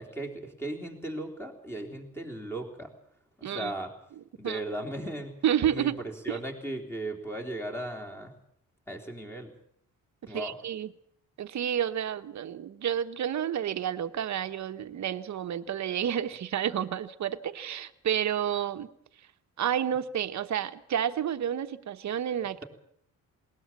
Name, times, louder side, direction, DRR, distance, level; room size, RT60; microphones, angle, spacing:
voice 1, 0.0-2.9 3.4-3.9 4.4-5.3 5.7-8.3 8.9-9.5 10.3-10.6, right 1 dB, 5° left, 2 dB, 3.4 m, -37 dB
voice 2, 3.4-3.7 4.4-4.6 5.4-6.0 6.3-6.4 10.3-10.9 11.4-18.9 19.6-22.6, right 9 dB, 55° right, 11 dB, 1.1 m, -30 dB
20.0 x 19.0 x 7.3 m, 0.67 s
cardioid pair, 135°, 34 cm